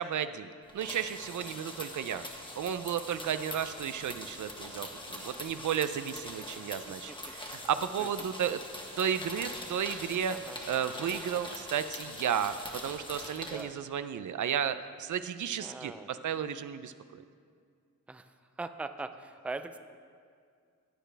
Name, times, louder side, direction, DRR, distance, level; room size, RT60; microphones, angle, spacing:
voice 1, 0.0-2.2 2.6-8.6 9.0-17.2, right 8 dB, 90° right, 12 dB, 0.5 m, -33 dB
sound 1, 0.7-13.6, left 1 dB, 15° left, 1.2 m, -43 dB
voice 2, 15.6-16.1 18.1-18.3 18.6-19.8, right 3 dB, 5° right, 9 dB, 0.3 m, -41 dB
15.0 x 8.9 x 3.4 m, 2.2 s
wide cardioid pair, 140°, 29 cm